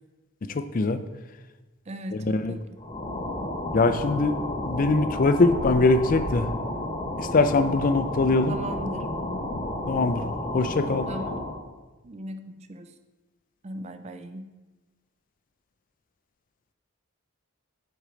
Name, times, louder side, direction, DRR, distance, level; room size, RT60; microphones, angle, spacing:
voice 1, 0.5-1.0 2.3-2.6 3.7-4.3 4.6-6.5 7.2-8.5 9.9-10.2 10.5-11.1, left 3 dB, 40° left, 11 dB, 0.4 m, -22 dB
voice 2, 1.9-2.6 8.5-9.1 11.1-11.4 12.0-12.9 13.6-14.5, right 1 dB, 30° right, 10 dB, 0.4 m, -38 dB
sound 1, 2.8-11.6, left 1 dB, 25° left, 1.1 m, -32 dB
sound 2, 4.5-10.1, equal, 80° right, 1.5 m, -42 dB
8.1 x 4.4 x 5.0 m, 1.2 s
head